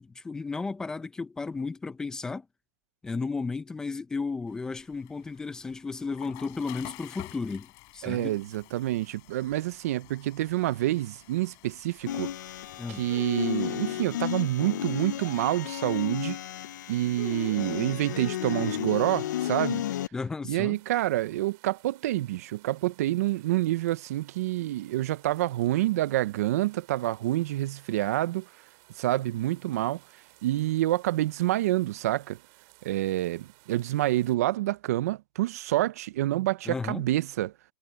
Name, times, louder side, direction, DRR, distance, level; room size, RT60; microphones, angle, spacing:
voice 1, 0.0-2.5 3.0-8.4 12.8-13.0 20.1-20.8 36.7-37.0, left 4 dB, 5° left, 0.5 m, -34 dB
Water / Toilet flush, 4.5-12.8, left 25 dB, 35° left, 5.5 m, -50 dB
voice 2, 8.0-12.3 12.9-16.4 16.9-19.8 20.5-28.5 29.0-30.0 30.4-32.4 32.8-37.5, right 15 dB, 55° right, 0.6 m, -27 dB
sound 1, 12.1-20.1, left 12 dB, 85° left, 0.5 m, -33 dB
sound 2, 20.7-34.4, right 27 dB, 35° right, 3.7 m, -59 dB
supercardioid pair, 165°, 10 cm